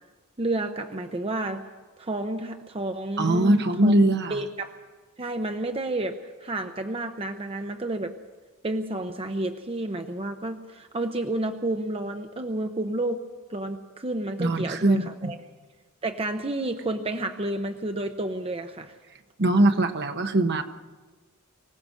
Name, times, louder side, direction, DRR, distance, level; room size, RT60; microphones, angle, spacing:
voice 1, 0.4-1.7 2.0-3.9 4.3-4.8 5.2-8.2 8.6-13.2 13.5-15.4 16.0-18.9, right 2 dB, 25° right, 6 dB, 0.8 m, -30 dB
voice 2, 3.2-4.4 14.4-15.3 19.4-20.6, right 1 dB, 50° right, 7 dB, 1.1 m, -22 dB
25.0 x 16.5 x 6.4 m, 1.3 s
head